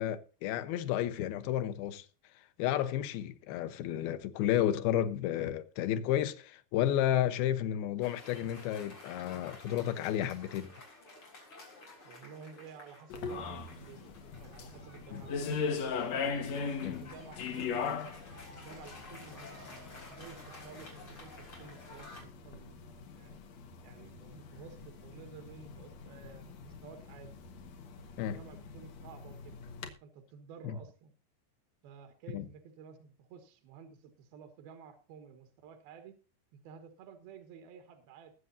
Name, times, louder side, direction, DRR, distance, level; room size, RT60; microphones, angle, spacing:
voice 1, 0.0-2.1 2.6-10.7 15.1-15.2 16.8-17.0 28.2-28.4 30.6-30.8 32.3-32.5, left 11 dB, 85° left, 2.8 m, -32 dB
Cheering / Applause, 8.0-22.2, left 2 dB, 35° left, 4.4 m, -52 dB
voice 2, 12.0-17.8 18.5-23.4 23.8-27.3 28.2-29.6 30.0-31.1 31.8-36.1 36.5-38.3, right 7 dB, 80° right, 3.3 m, -52 dB
sound 1, 13.1-29.9, left 5 dB, 55° left, 2.3 m, -40 dB
21.0 x 7.8 x 2.7 m
omnidirectional pair, 4.3 m